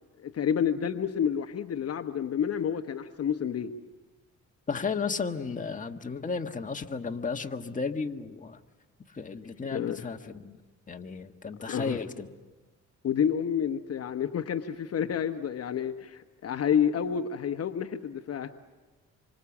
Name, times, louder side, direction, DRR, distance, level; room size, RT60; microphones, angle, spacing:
voice 1, 0.2-3.7 9.7-10.0 11.7-12.0 13.0-18.5, left 8 dB, 55° left, 7 dB, 1.1 m, -29 dB
voice 2, 4.7-8.6 9.1-10.6 10.9-12.3, left 5 dB, 25° left, 4 dB, 1.6 m, -34 dB
27.0 x 25.0 x 7.3 m, 1.2 s
cardioid pair, 90°, 30 cm